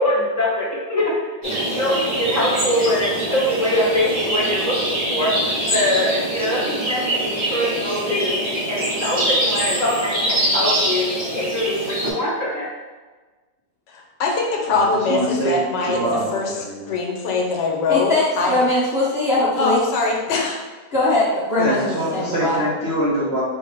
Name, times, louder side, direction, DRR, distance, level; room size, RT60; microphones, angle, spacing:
voice 1, 0.0-8.3 8.7-12.7, left 1 dB, 10° right, -10 dB, 1.0 m, -23 dB
sound 1, 1.4-12.1, right 1 dB, 30° right, 1.7 m, -24 dB
voice 2, 13.9-16.5 16.9-18.5 19.6-20.6, left 3 dB, 75° left, 0 dB, 1.3 m, -22 dB
voice 3, 14.7-15.6 15.8-16.9 21.6-23.4, right 1 dB, 50° right, -8 dB, 0.8 m, -24 dB
voice 4, 17.9-19.8 20.9-22.6, left 2 dB, 45° left, -9 dB, 0.8 m, -21 dB
4.0 x 3.1 x 3.4 m, 1.3 s
omnidirectional pair, 1.9 m